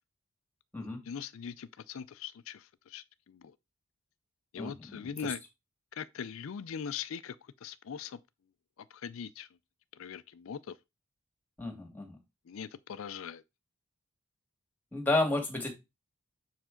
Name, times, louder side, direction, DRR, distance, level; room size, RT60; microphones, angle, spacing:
voice 1, 1.1-3.5 4.5-5.4 5.9-8.2 8.9-9.5 9.9-10.8 12.5-13.4, left 7 dB, 70° left, 0.4 m, -41 dB
voice 2, 4.6-5.1 11.6-12.2 14.9-15.7, left 2 dB, 10° left, 1.8 m, -31 dB
6.6 x 4.9 x 3.7 m
head